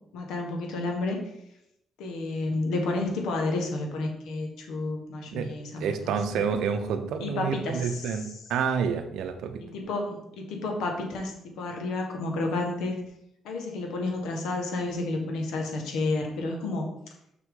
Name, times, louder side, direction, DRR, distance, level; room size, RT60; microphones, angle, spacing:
voice 1, 0.1-1.2 2.0-6.4 7.2-8.3 9.6-13.0 13.4-16.9, left 2 dB, 85° left, 2 dB, 1.4 m, -31 dB
voice 2, 5.8-9.6, right 6 dB, 80° right, 7 dB, 0.7 m, -29 dB
6.1 x 5.9 x 3.8 m, 0.80 s
cardioid pair, 90°, 0 cm